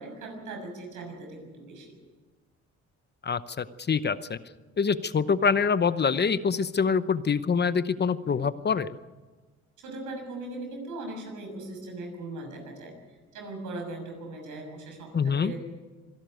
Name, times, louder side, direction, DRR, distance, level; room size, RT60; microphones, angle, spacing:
voice 1, 0.0-2.0 9.8-12.9 13.3-15.6, right 2 dB, 85° right, 3 dB, 6.5 m, -39 dB
voice 2, 3.2-4.4 4.8-9.0 15.1-15.5, left 6 dB, 35° left, 14 dB, 0.8 m, -25 dB
25.0 x 12.0 x 9.2 m, 1.4 s
cardioid pair, 90°, 30 cm